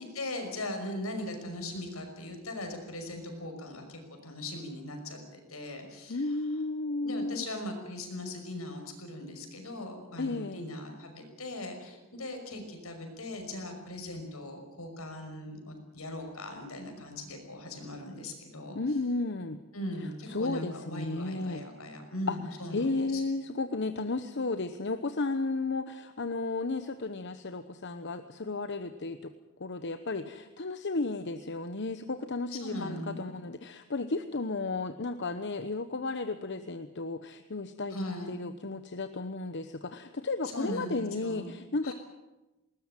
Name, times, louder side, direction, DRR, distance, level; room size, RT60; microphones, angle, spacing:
voice 1, 0.0-6.3 7.0-18.8 19.7-23.2 32.6-33.3 37.9-38.3 40.5-41.4 41.8-41.9, left 1 dB, 80° left, 5 dB, 5.7 m, -39 dB
voice 2, 6.1-7.5 10.2-10.6 18.7-19.6 20.0-21.6 22.3-22.4 22.7-29.3 29.6-41.9, left 3 dB, 55° left, 9 dB, 1.0 m, -33 dB
21.0 x 19.5 x 9.2 m, 1.0 s
head